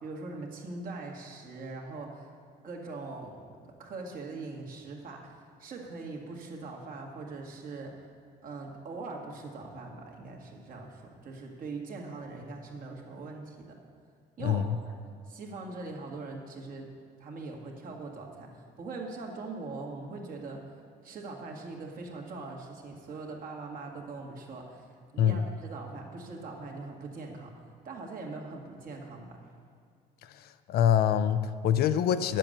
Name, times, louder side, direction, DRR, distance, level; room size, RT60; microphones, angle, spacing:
voice 1, 0.0-2.3 2.6-3.5 3.8-7.9 8.4-13.8 14.4-15.0 15.3-16.9 17.2-20.6 21.0-24.9 25.1-27.5 27.8-29.4, right 3 dB, 55° right, 0 dB, 2.0 m, -41 dB
voice 2, 14.4-14.8 25.2-25.5 30.3-32.4, left 9 dB, 70° left, 11 dB, 0.6 m, -25 dB
10.0 x 7.5 x 6.6 m, 2.3 s
cardioid pair, 110°, 17 cm